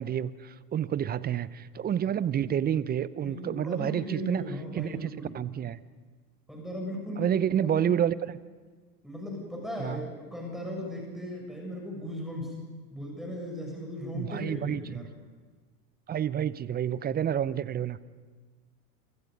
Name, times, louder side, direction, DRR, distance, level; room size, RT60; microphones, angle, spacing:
voice 1, 0.0-4.4 4.7-5.8 7.2-8.4 9.8-10.0 14.1-14.8 16.1-18.0, right 9 dB, 20° right, 18 dB, 0.7 m, -29 dB
voice 2, 3.2-5.3 6.5-7.9 9.0-12.5 12.9-15.1, equal, ahead, -1 dB, 7.1 m, -37 dB
28.0 x 25.5 x 5.3 m, 1.4 s
hypercardioid pair, 90°, 49 cm